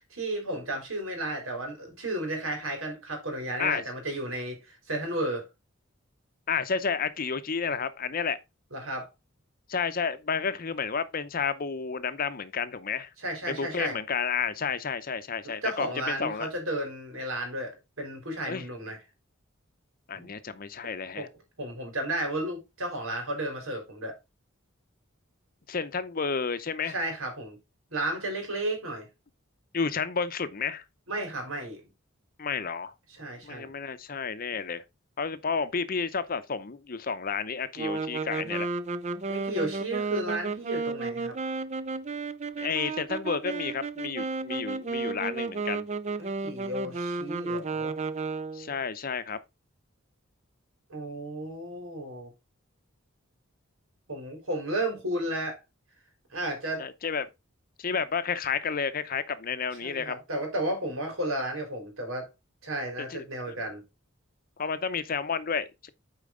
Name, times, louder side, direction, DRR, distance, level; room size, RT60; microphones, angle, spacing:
voice 1, 0.1-5.5 8.7-9.1 13.2-14.0 15.6-19.0 20.1-20.3 21.2-21.3 21.6-24.1 26.9-27.6 27.9-29.1 31.1-31.9 33.1-33.7 39.3-41.4 46.2-47.9 50.9-52.3 54.1-55.6 56.3-56.9 59.8-62.3 62.6-63.8, right 1 dB, 90° right, 3.7 m, -33 dB
voice 2, 6.5-8.4 9.7-13.1 13.5-16.5 18.5-18.6 20.1-21.3 25.7-27.0 29.7-30.8 32.4-32.9 33.4-34.8 35.2-38.7 42.6-45.8 48.5-49.4 56.8-57.3 57.8-60.2 63.1-63.6 64.6-65.9, left 5 dB, 45° left, 0.7 m, -31 dB
sound 1, 37.8-48.7, right 4 dB, 35° right, 0.5 m, -33 dB
8.5 x 4.6 x 3.7 m
head